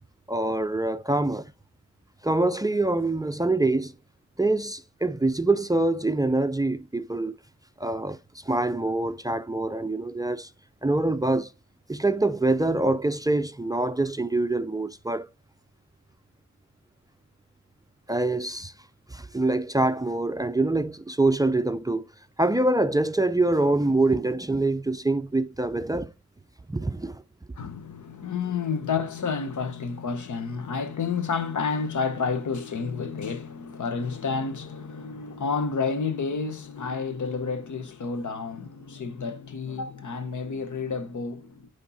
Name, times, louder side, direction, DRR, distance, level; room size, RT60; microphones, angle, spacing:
voice 1, 0.3-1.5 2.2-3.9 4.4-7.4 7.8-10.5 10.8-11.5 11.9-15.3 18.1-18.7 19.1-22.1 22.4-26.1 26.7-27.2, right 2 dB, 15° right, 0.4 m, -25 dB
voice 2, 27.6-41.7, left 5 dB, 80° left, 1.0 m, -30 dB
9.5 x 3.4 x 4.0 m
wide cardioid pair, 105°, 29 cm